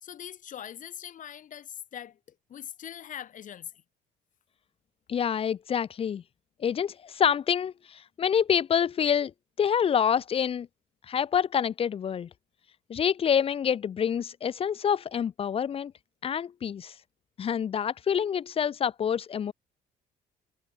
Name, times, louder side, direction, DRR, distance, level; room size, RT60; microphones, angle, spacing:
voice 1, 0.0-3.7, left 10 dB, 50° left, 1.5 m, -42 dB
voice 2, 5.1-6.2 6.6-9.3 9.6-10.7 11.1-12.3 12.9-15.9 16.2-16.9 17.4-19.5, left 8 dB, 35° left, 0.5 m, -27 dB
cardioid pair, 110°, 17 cm